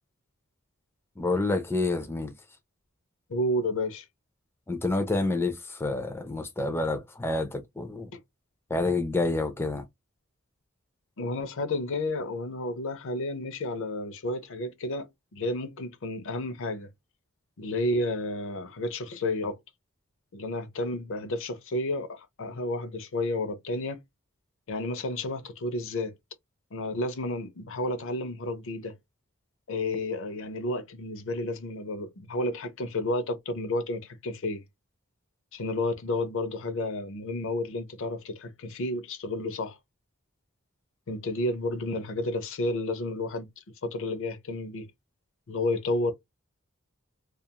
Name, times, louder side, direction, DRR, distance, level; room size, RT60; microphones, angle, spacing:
voice 1, 1.2-2.3 4.7-8.1 8.7-9.8, left 2 dB, 10° left, 0.4 m, -28 dB
voice 2, 3.3-4.1 8.1-8.2 11.2-16.9 17.6-19.6 20.3-24.0 24.7-26.1 26.7-28.9 29.7-34.6 35.5-39.8 41.1-43.5 43.8-44.9 45.5-46.1, left 2 dB, 65° left, 0.6 m, -31 dB
2.4 x 2.3 x 2.8 m
head